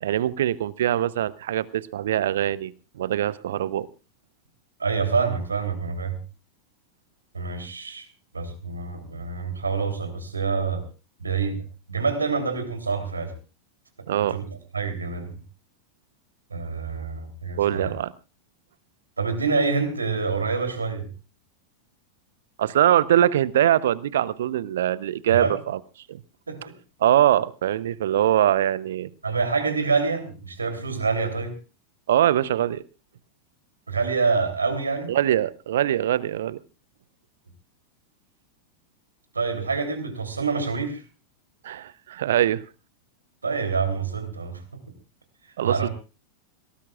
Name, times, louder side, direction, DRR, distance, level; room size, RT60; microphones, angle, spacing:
voice 1, 0.0-3.9 14.1-14.4 17.6-18.1 22.6-25.8 26.1-26.2 27.0-29.1 32.1-32.8 35.1-36.6 41.6-42.6 45.6-45.9, right 11 dB, 60° right, 20 dB, 0.7 m, -22 dB
voice 2, 4.8-6.2 7.3-8.1 8.3-10.9 11.2-13.3 14.3-14.4 14.7-15.4 16.5-17.9 19.2-21.1 25.3-25.6 26.5-26.7 29.2-31.6 33.9-35.2 39.3-41.0 43.4-44.6 45.6-45.9, right 4 dB, 75° right, 6 dB, 3.2 m, -26 dB
22.0 x 18.0 x 2.4 m, 0.32 s
figure-of-eight pair, 90°, 0 cm